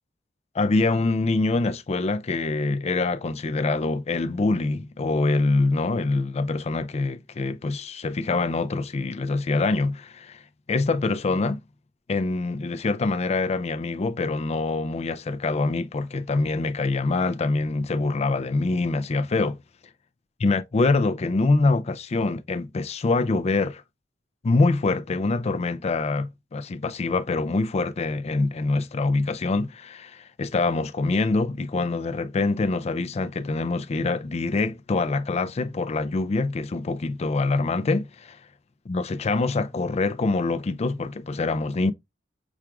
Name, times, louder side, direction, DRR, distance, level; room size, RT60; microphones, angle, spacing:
voice 1, 0.5-10.4 10.7-11.6 12.1-19.6 20.4-23.8 24.4-38.4 38.9-41.9, left 3 dB, 35° left, 0.4 m, -25 dB
5.9 x 2.4 x 3.3 m
head